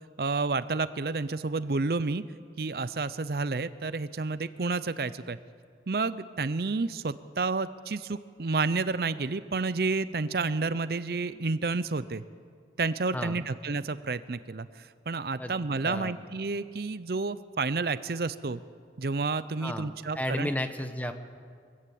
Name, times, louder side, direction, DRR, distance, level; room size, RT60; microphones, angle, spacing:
voice 1, 0.2-2.2 2.6-5.4 5.9-12.2 12.8-18.6 19.0-20.5, right 3 dB, 60° right, 14 dB, 0.6 m, -30 dB
voice 2, 15.8-16.2 19.6-21.1, left 1 dB, 10° left, 8 dB, 1.0 m, -33 dB
23.5 x 15.5 x 8.5 m, 2.2 s
head